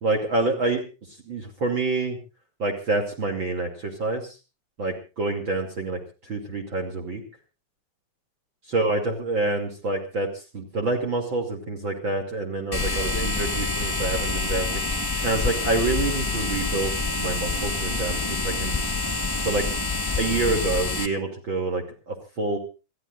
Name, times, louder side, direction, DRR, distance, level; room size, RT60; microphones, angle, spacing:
voice 1, 0.0-0.8 1.3-2.2 2.6-4.4 4.8-7.2 8.7-10.3 10.5-14.8 15.2-18.8 19.4-19.7 20.2-22.6, right 2 dB, 40° right, 6 dB, 3.3 m, -27 dB
sound 1, 12.7-21.1, left 3 dB, 20° left, 0.6 m, -27 dB
28.0 x 15.0 x 2.5 m, 0.33 s
omnidirectional pair, 3.4 m